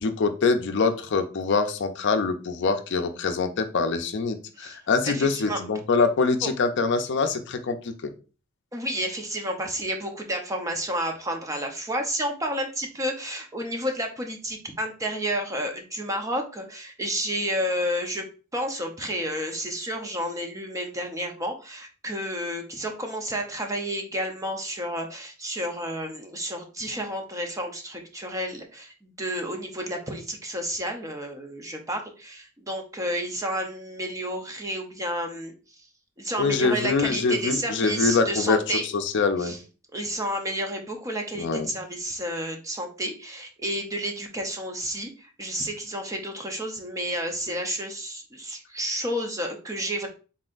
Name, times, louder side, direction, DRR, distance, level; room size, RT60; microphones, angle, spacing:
voice 1, 0.0-7.9 36.4-39.5 41.4-41.7, left 4 dB, 60° left, 7 dB, 0.5 m, -24 dB
voice 2, 5.1-5.6 6.4-6.5 8.7-18.2 18.5-35.5 36.2-38.9 39.4-39.6 39.9-50.1, equal, 15° right, 3 dB, 0.7 m, -31 dB
4.1 x 3.7 x 2.4 m, 0.34 s
head